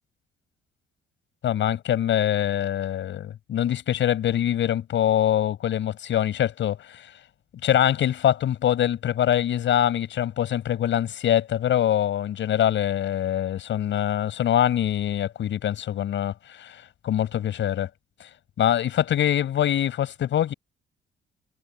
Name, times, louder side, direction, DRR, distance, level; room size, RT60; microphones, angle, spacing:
voice 1, 1.4-7.1 7.6-17.9 18.2-18.3 18.6-20.5, left 11 dB, 70° left, 6.9 m, -24 dB
cardioid pair, 90°, 20 cm